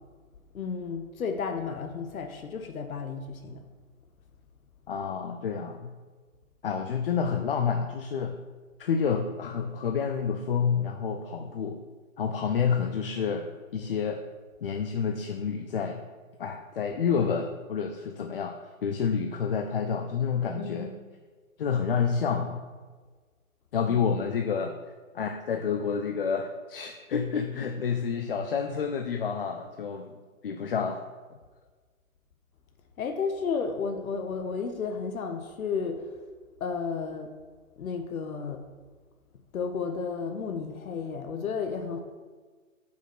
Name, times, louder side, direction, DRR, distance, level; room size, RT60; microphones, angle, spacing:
voice 1, 0.5-3.6 20.6-20.9 33.0-36.0 36.6-37.3 37.8-38.6 39.5-42.0, left 5 dB, 80° left, 6 dB, 0.9 m, -32 dB
voice 2, 4.9-5.9 6.6-8.3 8.8-11.8 12.2-14.2 14.6-16.0 16.4-18.5 18.8-20.9 21.6-22.6 23.7-24.7 25.1-30.1 30.4-31.0, left 6 dB, 45° left, 5 dB, 0.4 m, -29 dB
5.7 x 4.3 x 6.0 m, 1.5 s
hypercardioid pair, 145°, 42 cm